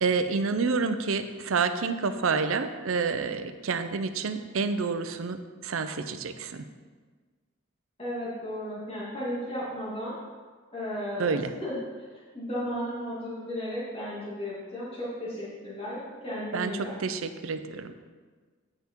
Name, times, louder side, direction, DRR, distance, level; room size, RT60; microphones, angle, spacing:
voice 1, 0.0-5.4 5.6-6.6 11.2-11.5 16.5-16.7 17.0-17.9, right 4 dB, 80° right, 10 dB, 0.5 m, -28 dB
voice 2, 8.0-10.2 10.7-11.8 12.1-17.0, equal, 30° left, -8 dB, 2.3 m, -34 dB
8.9 x 5.7 x 4.5 m, 1.5 s
head